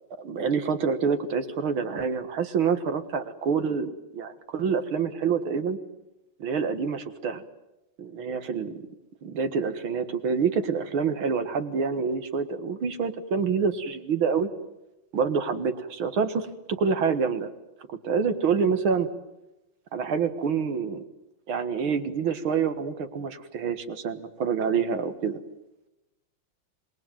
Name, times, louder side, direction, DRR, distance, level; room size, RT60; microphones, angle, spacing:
voice 1, 0.2-5.8 6.4-7.4 8.0-8.8 9.2-14.5 15.1-17.5 17.9-19.1 19.9-21.1 21.5-25.4, right 6 dB, 90° right, 9 dB, 2.5 m, -27 dB
27.0 x 21.0 x 9.1 m, 0.92 s
omnidirectional pair, 2.2 m